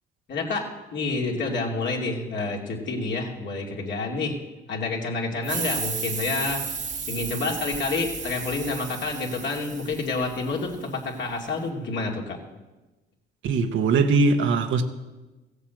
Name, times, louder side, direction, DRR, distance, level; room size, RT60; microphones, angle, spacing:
voice 1, 0.3-4.4 4.7-6.6 7.1-12.4, left 3 dB, 65° left, 2.7 m, -28 dB
sound 1, 5.4-10.7, right 5 dB, 40° right, 1.2 m, -33 dB
voice 2, 13.4-14.8, right 4 dB, 75° right, 1.2 m, -21 dB
15.5 x 8.2 x 7.8 m
cardioid pair, 90°, 20 cm